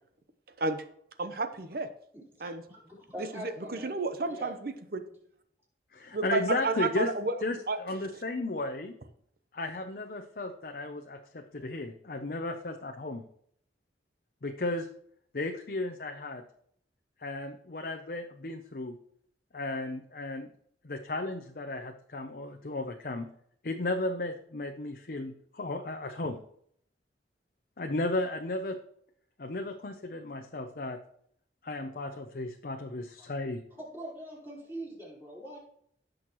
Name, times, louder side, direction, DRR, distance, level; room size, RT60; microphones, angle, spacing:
voice 1, 1.2-1.9 2.4-2.6 3.2-5.0 6.1-7.4 7.7-7.8, right 3 dB, 55° right, 9 dB, 0.9 m, -31 dB
voice 2, 2.7-4.5 5.1-5.2 33.8-35.6, right 1 dB, 15° right, -6 dB, 4.3 m, -43 dB
voice 3, 5.9-7.1 7.4-8.9 9.5-13.2 14.4-14.9 15.3-16.4 17.2-19.0 19.5-20.5 20.8-23.3 23.6-26.4 27.8-28.8 29.4-31.0 31.6-33.6, left 2 dB, 55° left, 5 dB, 0.7 m, -34 dB
16.5 x 6.4 x 3.1 m, 0.67 s
head